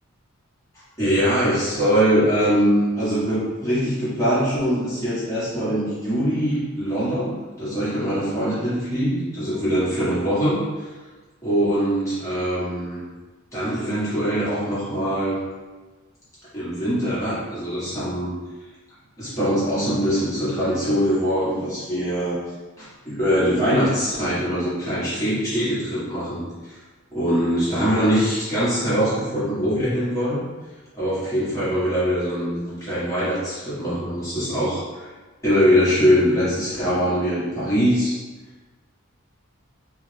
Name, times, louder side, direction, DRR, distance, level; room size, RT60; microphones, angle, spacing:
voice 1, 1.0-10.9 11.4-13.0 13.5-15.4 16.5-18.3 19.2-22.4 22.8-26.8 27.1-30.4 30.9-35.1 35.4-38.1, equal, 15° left, -12 dB, 1.5 m, -22 dB
3.5 x 2.5 x 3.3 m, 1.3 s
head